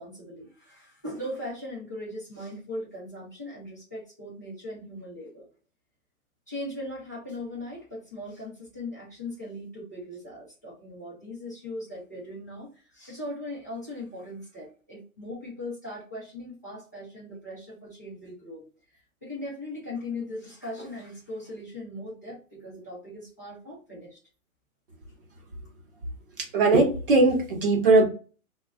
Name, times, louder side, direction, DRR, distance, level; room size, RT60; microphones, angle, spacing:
voice 1, 0.0-5.5 6.5-18.6 19.2-24.2, left 1 dB, 15° left, -9 dB, 0.4 m, -39 dB
voice 2, 26.5-28.1, right 3 dB, 40° right, 2 dB, 0.7 m, -19 dB
2.2 x 2.1 x 3.3 m, 0.36 s
hypercardioid pair, 170°, 42 cm